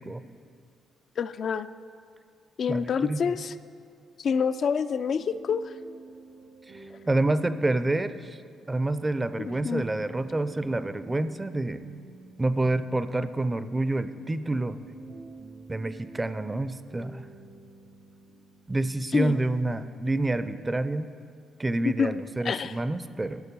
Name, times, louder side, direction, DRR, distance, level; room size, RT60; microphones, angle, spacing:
voice 1, 1.2-1.7 2.6-3.5 4.2-5.7 9.6-9.8 19.1-19.4 21.8-22.8, left 6 dB, 55° left, 11 dB, 0.3 m, -27 dB
voice 2, 2.7-3.2 6.7-8.4 8.7-11.8 12.4-14.8 15.7-17.3 18.7-21.1 21.6-23.4, right 2 dB, 20° right, 13 dB, 0.4 m, -28 dB
sound 1, 5.1-18.9, right 3 dB, 75° right, 1.4 m, -49 dB
13.0 x 6.6 x 5.3 m, 2.3 s
cardioid pair, 90°, 0 cm